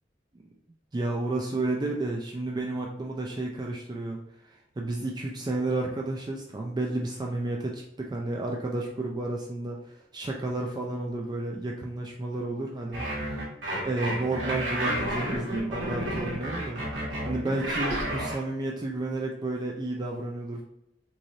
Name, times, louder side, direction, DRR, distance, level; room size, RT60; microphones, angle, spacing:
voice 1, 0.9-13.2 13.7-16.8 17.3-20.6, right 2 dB, 25° right, -1 dB, 0.3 m, -31 dB
sound 1, 12.9-18.4, right 1 dB, 80° right, 1.4 m, -31 dB
3.8 x 3.1 x 2.6 m, 0.83 s
head